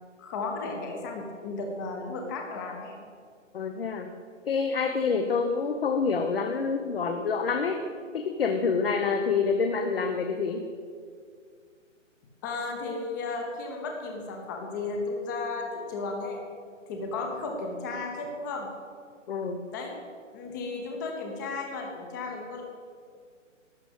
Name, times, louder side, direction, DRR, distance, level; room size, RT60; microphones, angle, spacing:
voice 1, 0.2-3.0 12.4-16.4 16.9-18.7 19.7-19.9 20.3-22.6, left 3 dB, 15° left, 1 dB, 0.9 m, -34 dB
voice 2, 3.5-4.1 4.5-7.8 8.1-10.7 19.3-19.7, left 5 dB, 50° left, 5 dB, 0.9 m, -27 dB
12.0 x 6.8 x 8.3 m, 2.1 s
hypercardioid pair, 160°, 38 cm